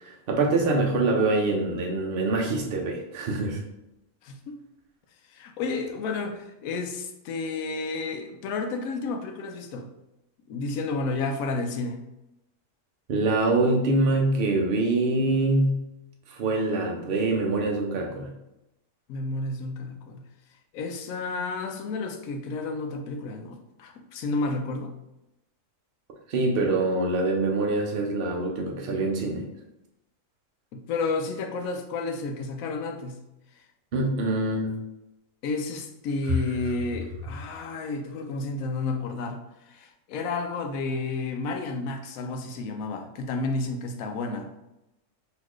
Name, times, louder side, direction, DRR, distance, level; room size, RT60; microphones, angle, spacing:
voice 1, 0.0-3.6 13.1-15.8 16.3-18.3 26.3-29.4 33.9-34.7, right 2 dB, 50° right, 1 dB, 0.8 m, -24 dB
voice 2, 4.2-4.5 5.3-9.9 10.5-12.0 19.1-20.2 20.7-24.9 30.7-33.2 35.4-44.5, left 3 dB, 85° left, 5 dB, 1.0 m, -31 dB
4.1 x 3.1 x 3.0 m, 0.92 s
omnidirectional pair, 1.4 m